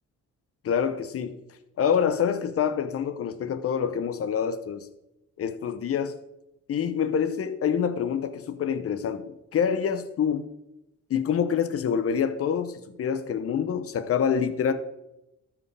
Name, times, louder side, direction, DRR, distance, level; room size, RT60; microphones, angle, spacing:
voice 1, 0.6-1.4 1.8-4.9 5.4-6.1 6.7-10.5 11.1-14.7, left 7 dB, 50° left, 0.8 m, -26 dB
13.5 x 4.9 x 3.4 m
cardioid pair, 90°, 30 cm